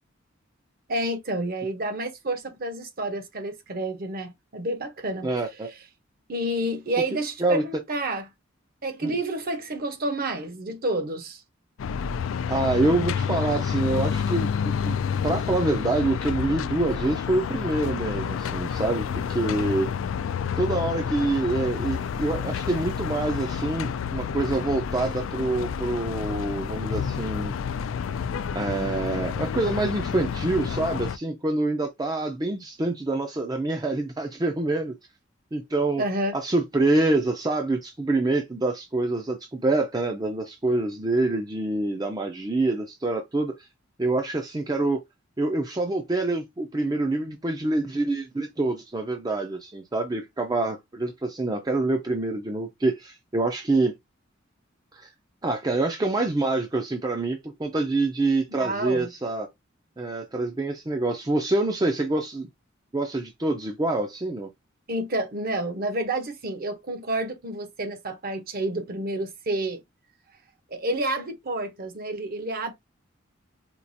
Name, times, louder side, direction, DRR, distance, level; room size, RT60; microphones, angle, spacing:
voice 1, 0.9-5.5 6.3-8.2 8.8-11.4 36.0-36.3 58.5-59.1 64.9-69.8 70.7-72.7, right 1 dB, 50° right, 0.8 m, -29 dB
voice 2, 5.2-5.7 7.4-7.6 9.0-9.1 12.5-15.0 15.2-19.9 20.6-27.5 28.5-34.9 35.5-36.0 36.3-43.5 44.0-45.0 45.4-53.9 54.9-55.1 55.4-59.5 60.0-62.5 62.9-64.5, right 2 dB, 20° right, 0.5 m, -26 dB
sound 1, 11.8-31.2, left 7 dB, 80° left, 0.3 m, -29 dB
4.5 x 2.4 x 2.7 m
head